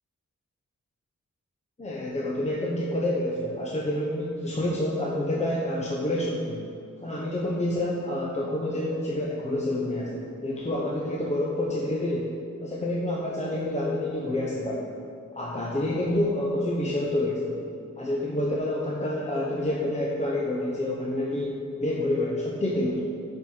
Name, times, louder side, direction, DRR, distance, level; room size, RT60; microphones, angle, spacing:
voice 1, 1.8-6.6 7.0-14.9 15.3-17.6 18.0-23.0, left 1 dB, 20° left, -4 dB, 0.8 m, -28 dB
7.4 x 5.5 x 5.8 m, 2.5 s
wide cardioid pair, 145°, 30 cm